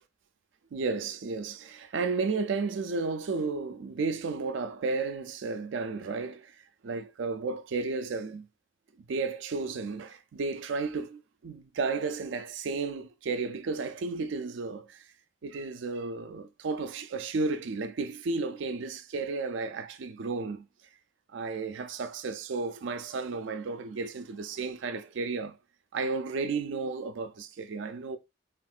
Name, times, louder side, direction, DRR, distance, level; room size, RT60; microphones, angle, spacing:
voice 1, 0.7-8.5 9.0-15.1 15.4-20.7 21.3-25.6 25.9-28.2, right 4 dB, 70° right, 0.4 m, -33 dB
3.5 x 2.4 x 2.4 m
head